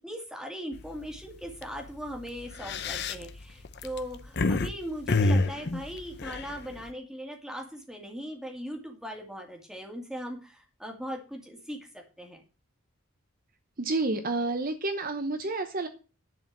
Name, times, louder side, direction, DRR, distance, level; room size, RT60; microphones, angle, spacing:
voice 1, 0.0-12.4, equal, ahead, 1 dB, 2.4 m, -39 dB
sound 1, 0.7-1.0 1.4-1.6 2.4-4.7 5.1-6.9, left 3 dB, 50° left, 0.7 m, -27 dB
voice 2, 13.8-15.9, right 2 dB, 40° right, 8 dB, 0.9 m, -29 dB
10.5 x 5.0 x 7.4 m, 0.34 s
head